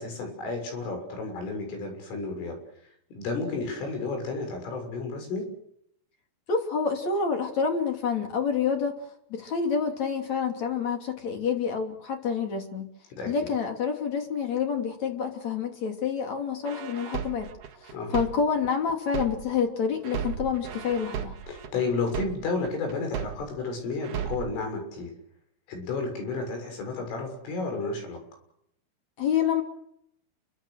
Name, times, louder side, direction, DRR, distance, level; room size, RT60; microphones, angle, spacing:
voice 1, 0.0-2.6 3.1-5.5 13.1-13.5 17.9-18.2 21.5-25.1 25.7-28.2, left 3 dB, 70° left, 4 dB, 9.2 m, -32 dB
voice 2, 6.5-9.0 9.3-12.9 13.3-17.5 18.1-21.3 29.2-29.6, left 6 dB, 40° left, 4 dB, 3.7 m, -28 dB
sound 1, 16.7-19.7 20.0-23.7 24.0-24.6, right 8 dB, 55° right, 2.4 m, -35 dB
29.0 x 24.0 x 6.7 m, 0.73 s
omnidirectional pair, 5.9 m